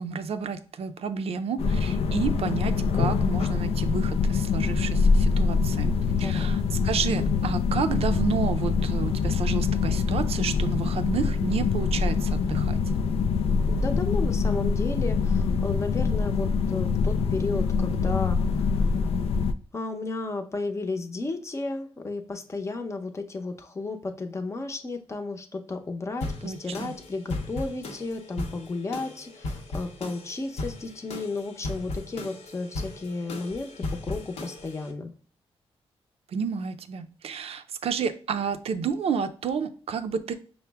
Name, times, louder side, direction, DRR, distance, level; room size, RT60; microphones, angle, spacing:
voice 1, 0.0-5.9 6.2-12.8 26.4-26.9 36.3-40.3, right 6 dB, 70° right, 10 dB, 0.4 m, -30 dB
sound 1, 1.6-19.5, left 5 dB, 70° left, 0.4 m, -24 dB
voice 2, 6.2-6.5 13.7-19.0 19.7-35.1, left 3 dB, 25° left, 4 dB, 0.7 m, -33 dB
sound 2, 26.2-34.9, left 2 dB, 90° left, 0.8 m, -37 dB
5.6 x 2.1 x 3.3 m, 0.43 s
cardioid pair, 100°, 10 cm